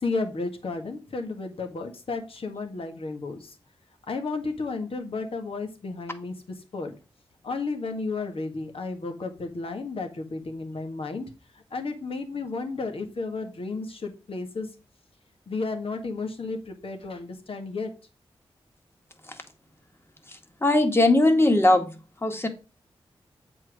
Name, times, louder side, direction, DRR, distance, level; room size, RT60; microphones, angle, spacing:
voice 1, 0.0-3.5 4.1-6.3 6.7-6.9 7.4-11.3 11.7-14.7 15.5-17.9, left 3 dB, 65° left, 1.8 m, -32 dB
voice 2, 20.6-21.9 22.2-22.5, left 2 dB, 25° left, 1.8 m, -19 dB
7.8 x 4.5 x 5.0 m
cardioid pair, 45°, 10 cm